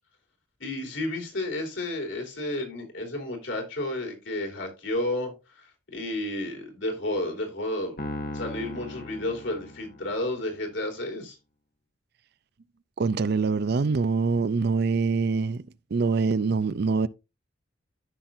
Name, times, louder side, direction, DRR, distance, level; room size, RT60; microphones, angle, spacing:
voice 1, 0.6-7.9 8.3-11.4, left 1 dB, 75° left, 3.1 m, -32 dB
Piano, 8.0-10.4, left 1 dB, 50° left, 1.1 m, -37 dB
voice 2, 13.0-15.6 15.9-17.1, right 4 dB, 55° right, 0.4 m, -24 dB
14.0 x 6.0 x 2.6 m
head